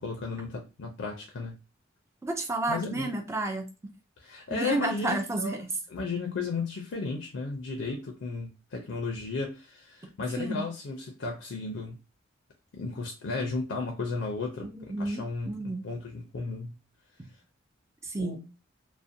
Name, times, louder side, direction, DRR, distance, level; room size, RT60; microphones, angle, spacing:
voice 1, 0.0-1.5 2.7-3.1 4.2-5.6 5.9-12.0 12.7-16.8 18.2-18.4, left 4 dB, 70° left, 0.4 m, -34 dB
voice 2, 2.2-3.7 4.5-5.7 10.4-10.6 14.6-15.9 18.0-18.4, right 2 dB, 15° right, 0.3 m, -31 dB
2.4 x 2.0 x 2.6 m
head